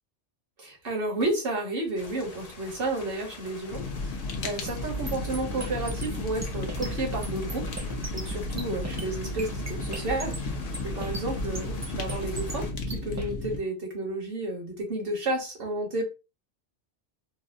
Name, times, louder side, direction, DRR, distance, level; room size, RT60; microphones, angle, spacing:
voice 1, 0.6-7.6 8.1-10.4 10.8-16.1, right 2 dB, 55° right, 0 dB, 1.3 m, -32 dB
sound 1, 2.0-12.7, left 3 dB, 40° left, 0.6 m, -45 dB
Fire, 3.7-13.6, left 3 dB, 70° left, 0.8 m, -35 dB
sound 2, 4.7-13.3, right 3 dB, 25° right, 0.3 m, -37 dB
4.0 x 2.0 x 2.6 m, 0.29 s
omnidirectional pair, 1.2 m